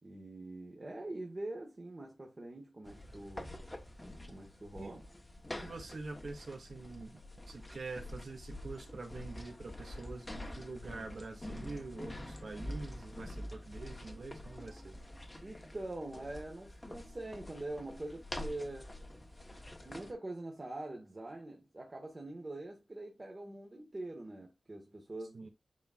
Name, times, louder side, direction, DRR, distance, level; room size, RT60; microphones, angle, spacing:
voice 1, 0.0-3.5 4.3-5.0 15.4-18.9 19.8-25.5, right 2 dB, 30° right, 1.7 m, -44 dB
sound 1, 2.8-20.1, left 1 dB, 15° left, 1.2 m, -46 dB
voice 2, 5.6-7.2 7.5-15.0 25.3-25.5, right 3 dB, 65° right, 2.4 m, -45 dB
10.5 x 4.3 x 2.5 m
wide cardioid pair, 105°, 0 cm